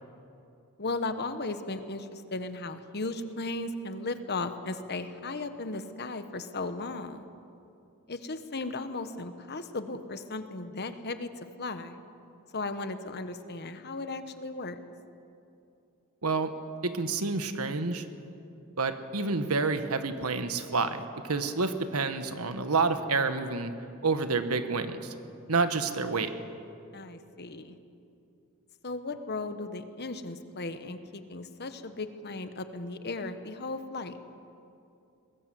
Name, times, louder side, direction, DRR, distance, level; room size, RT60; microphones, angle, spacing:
voice 1, 0.8-7.3 8.1-11.3 11.6-12.0 12.5-14.8 26.9-27.7 28.8-34.1, left 3 dB, 50° left, 10 dB, 1.2 m, -36 dB
voice 2, 16.2-16.5 16.8-18.0 18.8-23.7 24.0-25.1 25.5-26.3, right 4 dB, 90° right, 9 dB, 1.5 m, -29 dB
22.5 x 20.5 x 7.7 m, 2.7 s
head